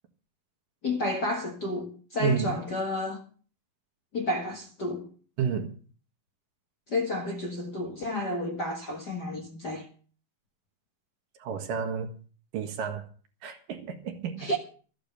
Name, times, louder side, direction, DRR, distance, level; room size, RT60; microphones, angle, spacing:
voice 1, 0.8-3.2 4.1-5.1 6.9-9.9 14.4-14.6, left 1 dB, 40° left, 1.5 m, -31 dB
voice 2, 2.2-2.5 5.4-5.7 11.4-12.1 12.5-13.1 13.4-14.5, right 6 dB, 75° right, 3.2 m, -30 dB
14.0 x 8.9 x 6.8 m
omnidirectional pair, 4.0 m